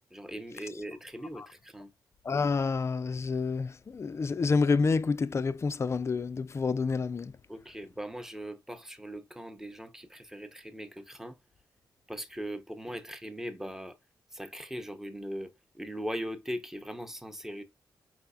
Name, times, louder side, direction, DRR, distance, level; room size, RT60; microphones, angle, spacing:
voice 1, 0.1-1.9 7.5-11.4 12.1-14.0 14.3-17.6, equal, 5° right, 0.7 m, -40 dB
voice 2, 2.2-7.4, left 4 dB, 35° left, 0.4 m, -28 dB
4.9 x 3.3 x 2.3 m
cardioid pair, 95°, 8 cm